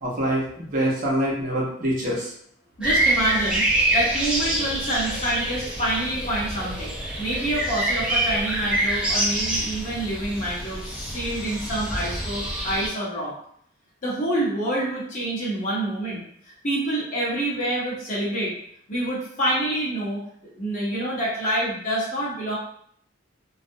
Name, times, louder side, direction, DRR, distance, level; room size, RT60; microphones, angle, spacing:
voice 1, 0.0-2.3, right 1 dB, 45° right, -4 dB, 0.6 m, -25 dB
voice 2, 2.8-13.3 14.0-18.5 18.9-22.6, right 1 dB, 40° left, -5 dB, 0.9 m, -27 dB
sound 1, 2.8-12.9, right 1 dB, 5° right, 0.4 m, -26 dB
2.3 x 2.0 x 2.6 m, 0.66 s
head